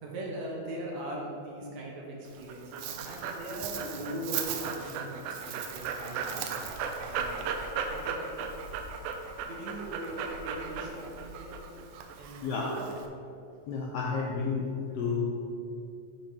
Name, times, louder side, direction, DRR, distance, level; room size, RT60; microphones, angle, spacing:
voice 1, 0.0-7.5 7.8-8.3 8.7-8.8 9.5-11.6 12.2-12.9, right 1 dB, 70° right, -2 dB, 2.2 m, -40 dB
Dog, 2.3-13.1, right 6 dB, 85° right, 1.4 m, -36 dB
voice 2, 12.4-12.8 13.7-15.3, left 5 dB, 80° left, -1 dB, 1.4 m, -31 dB
8.5 x 5.6 x 3.4 m, 2.5 s
omnidirectional pair, 3.4 m